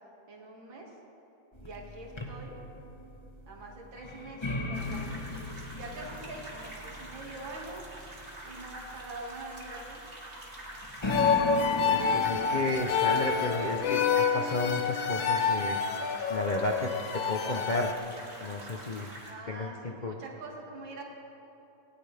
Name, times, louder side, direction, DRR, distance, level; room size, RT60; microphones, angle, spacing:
voice 1, 0.3-0.9 1.6-2.5 3.5-5.2 5.7-7.8 8.4-10.0 19.2-21.0, right 2 dB, 90° right, -2 dB, 2.9 m, -44 dB
sound 1, 1.5-13.9, left 2 dB, 20° left, 0.9 m, -39 dB
sound 2, 4.7-19.3, right 1 dB, 30° right, 2.5 m, -46 dB
sound 3, 11.1-17.9, left 6 dB, 90° left, 1.5 m, -28 dB
voice 2, 11.8-15.8 16.3-16.9 17.3-18.0 18.4-19.1 19.5-20.1, left 2 dB, 60° left, 0 dB, 0.4 m, -33 dB
19.0 x 17.5 x 3.4 m, 2.9 s
omnidirectional pair, 2.1 m